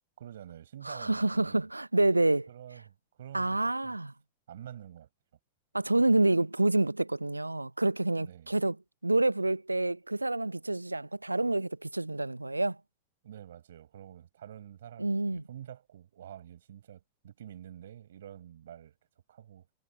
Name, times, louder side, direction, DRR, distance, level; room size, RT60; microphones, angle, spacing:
voice 1, 0.2-1.7 2.5-4.0 4.5-5.1 8.2-8.5 13.2-18.9 19.3-19.7, right 10 dB, 60° right, 5.2 m, -48 dB
voice 2, 0.8-2.5 3.3-4.1 5.7-8.8 9.0-12.8 15.0-15.4, right 2 dB, 85° right, 0.6 m, -28 dB
figure-of-eight pair, 90°, 0 cm